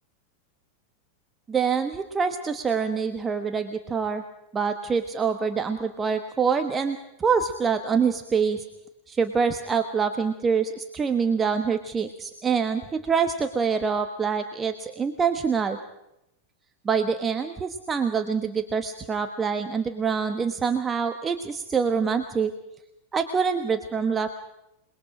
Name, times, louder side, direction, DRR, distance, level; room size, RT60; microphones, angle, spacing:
voice 1, 1.5-4.2 4.5-8.6 9.1-15.8 16.8-22.5 23.1-24.3, right 6 dB, 20° right, 8 dB, 1.3 m, -25 dB
28.0 x 21.0 x 5.1 m, 0.86 s
figure-of-eight pair, 90°, 0 cm